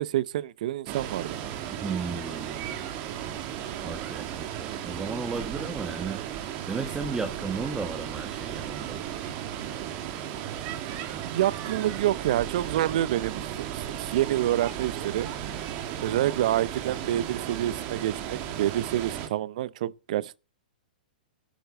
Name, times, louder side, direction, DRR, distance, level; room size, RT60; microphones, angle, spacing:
voice 1, 0.0-1.3 11.2-13.5 13.9-15.3 16.0-20.4, right 13 dB, 55° right, 0.6 m, -27 dB
Water, 0.9-19.3, right 10 dB, 40° right, 2.0 m, -35 dB
voice 2, 1.7-2.7 3.8-6.2 6.6-9.0, right 4 dB, 10° right, 1.3 m, -34 dB
11.5 x 7.9 x 7.5 m
hypercardioid pair, 115°, 5 cm